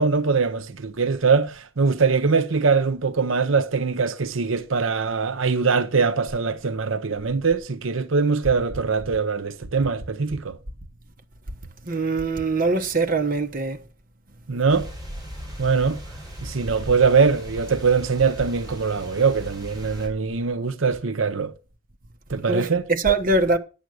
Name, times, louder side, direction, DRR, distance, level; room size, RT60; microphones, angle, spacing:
voice 1, 0.0-10.5 14.5-14.9 15.6-16.0 16.4-21.5 22.3-22.8, right 5 dB, 75° right, 0.8 m, -22 dB
voice 2, 11.9-13.8 22.5-23.6, right 3 dB, 45° right, 1.0 m, -22 dB
sound 1, 14.7-20.1, equal, 20° right, 4.7 m, -38 dB
10.5 x 8.1 x 6.2 m
head